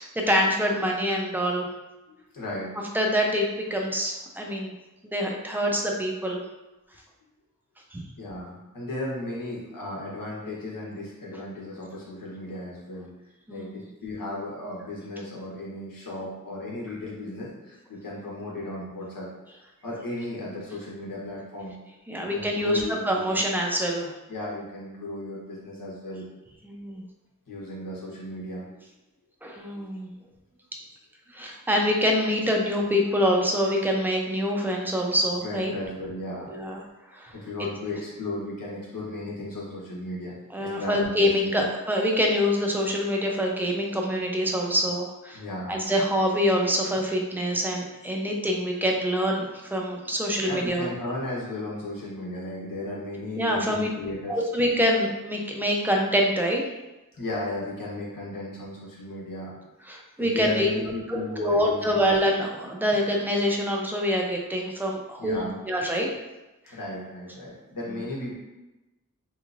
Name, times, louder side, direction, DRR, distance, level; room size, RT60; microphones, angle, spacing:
voice 1, 0.0-1.7 2.9-4.7 5.0-6.4 7.9-8.0 13.5-13.8 22.1-24.1 26.6-27.0 29.4-30.1 31.3-35.7 36.5-36.8 37.1-37.3 40.5-45.4 45.7-50.9 53.4-53.9 54.3-56.6 59.9-60.7 61.1-66.1, equal, 5° right, 0 dB, 0.5 m, -25 dB
voice 2, 2.1-2.7 8.2-13.1 13.5-21.7 22.2-23.4 24.3-26.2 27.5-28.7 35.4-36.6 37.3-41.6 45.3-45.8 50.4-54.5 57.1-59.5 60.2-62.0 65.2-65.6 66.7-68.4, left 1 dB, 85° left, -5 dB, 1.1 m, -35 dB
3.4 x 3.1 x 2.5 m, 1.0 s
wide cardioid pair, 85°, 32 cm